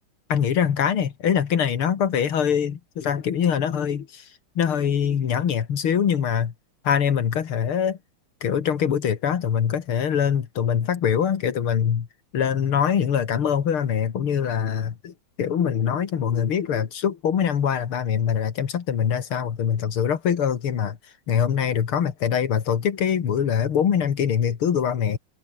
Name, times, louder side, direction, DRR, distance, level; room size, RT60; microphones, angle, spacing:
voice 1, 0.3-4.3 4.6-6.5 6.8-8.0 8.4-12.1 12.3-21.0 21.3-25.2, left 8 dB, 85° left, 2.7 m, -23 dB
omnidirectional pair, 2.3 m